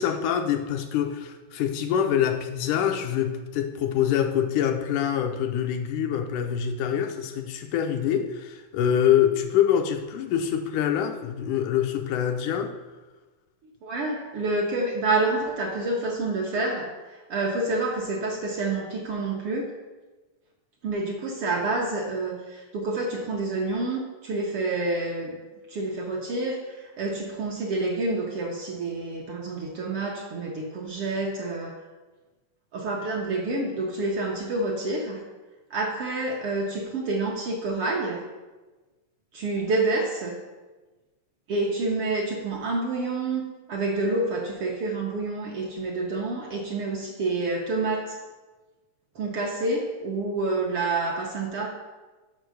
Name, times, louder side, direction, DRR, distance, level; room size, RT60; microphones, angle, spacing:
voice 1, 0.0-12.7, left 9 dB, 85° left, 5 dB, 2.2 m, -25 dB
voice 2, 13.8-19.7 20.8-25.3 25.7-31.7 32.7-35.2 35.7-38.2 39.3-40.4 41.5-48.2 49.1-51.7, right 2 dB, 65° right, -2 dB, 1.5 m, -28 dB
6.6 x 5.7 x 6.4 m, 1.2 s
omnidirectional pair, 3.5 m